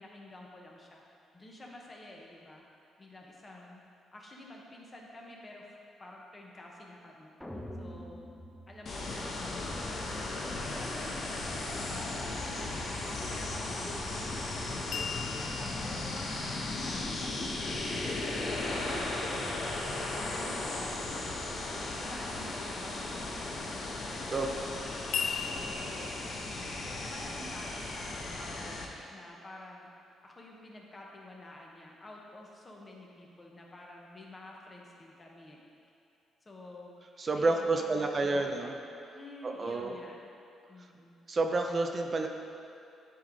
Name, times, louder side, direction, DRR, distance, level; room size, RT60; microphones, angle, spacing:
voice 1, 0.0-3.8 4.1-5.7 6.0-7.3 7.8-8.3 8.7-12.7 13.0-19.7 20.3-23.7 24.1-24.4 25.4-29.9 30.2-35.6 36.4-37.0 37.3-38.8 39.1-40.1 40.7-41.2, left 1 dB, 30° left, -2 dB, 1.2 m, -50 dB
sound 1, 7.4-9.7, equal, 5° left, 0.7 m, -45 dB
sound 2, 8.9-28.9, left 2 dB, 55° left, 1.0 m, -36 dB
sound 3, 14.9-18.9 25.1-27.9, left 7 dB, 70° left, 0.4 m, -41 dB
voice 2, 37.2-38.7 39.4-39.9 41.3-42.3, right 3 dB, 40° right, 4 dB, 0.5 m, -29 dB
10.5 x 3.5 x 3.9 m, 2.7 s
cardioid pair, 90°, 0 cm